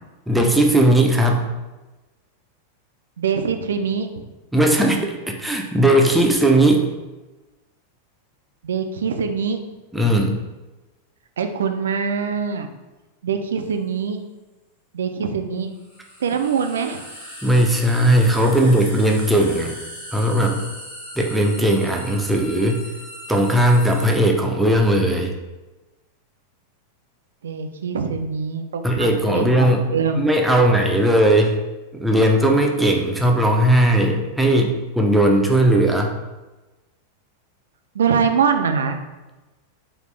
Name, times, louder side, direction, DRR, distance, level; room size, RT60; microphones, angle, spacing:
voice 1, 0.3-1.4 4.5-6.9 9.9-10.4 17.4-19.8 20.1-20.6 21.2-22.8 23.3-25.3 28.8-29.9 30.2-31.6 32.0-36.1, right 1 dB, 5° right, 1 dB, 0.5 m, -17 dB
voice 2, 3.2-4.1 8.6-9.6 11.4-12.7 13.2-14.2 14.9-15.7 16.2-17.0 27.4-29.7 29.9-30.3 37.9-39.0, right 6 dB, 65° right, 7 dB, 0.3 m, -23 dB
sound 1, 13.6-13.7 15.7-24.1, equal, 75° left, 1.5 m, -38 dB
4.1 x 2.5 x 3.1 m, 1.1 s
figure-of-eight pair, 90°, 0 cm